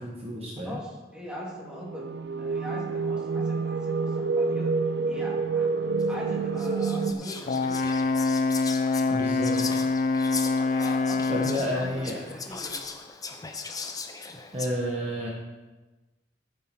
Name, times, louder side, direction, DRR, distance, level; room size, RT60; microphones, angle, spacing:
voice 1, 0.0-0.8 9.1-9.6 11.3-12.2 14.5-15.3, equal, 30° right, -3 dB, 1.4 m, -30 dB
voice 2, 0.6-4.7 5.1-5.7 6.1-7.8 10.7-12.8, equal, 5° right, -5 dB, 2.7 m, -41 dB
sound 1, 1.7-7.1, right 4 dB, 60° right, 0.6 m, -28 dB
Whispering, 6.0-6.1 6.6-14.7, left 4 dB, 20° left, 0.8 m, -38 dB
Brass instrument, 7.5-11.7, left 3 dB, 40° left, 0.4 m, -25 dB
14.0 x 7.5 x 4.4 m, 1.2 s
head